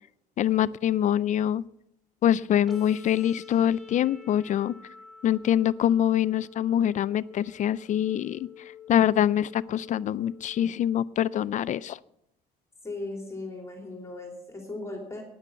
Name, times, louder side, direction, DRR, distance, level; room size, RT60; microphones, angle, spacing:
voice 1, 0.4-1.6 2.2-4.7 5.2-8.5 8.9-12.0, left 10 dB, 45° left, 19 dB, 0.4 m, -24 dB
sound 1, 2.7-10.7, left 7 dB, ahead, 2.4 m, -48 dB
voice 2, 12.8-15.2, left 2 dB, 15° left, 2 dB, 2.8 m, -37 dB
9.9 x 9.9 x 6.9 m, 0.78 s
cardioid pair, 110°, 17 cm